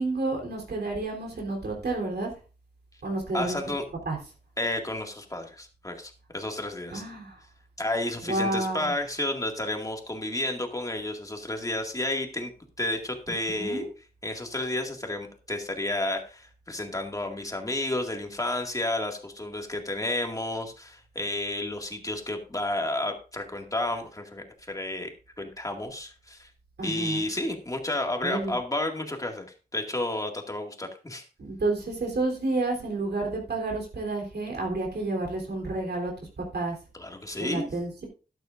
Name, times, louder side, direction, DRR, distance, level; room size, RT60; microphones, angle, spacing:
voice 1, 0.0-2.3 3.0-3.6 4.1-4.2 6.9-7.3 8.3-8.9 13.5-13.9 26.8-27.3 28.2-28.5 31.4-36.1 36.4-36.8 37.4-38.0, right 2 dB, 80° right, 0 dB, 3.6 m, -30 dB
voice 2, 3.3-3.8 4.6-7.0 7.8-12.5 12.8-13.8 14.2-26.5 26.8-29.5 29.7-31.3 36.9-37.7, left 1 dB, 20° left, 3 dB, 2.1 m, -31 dB
12.5 x 12.0 x 2.6 m, 0.36 s
wide cardioid pair, 105°, 17 cm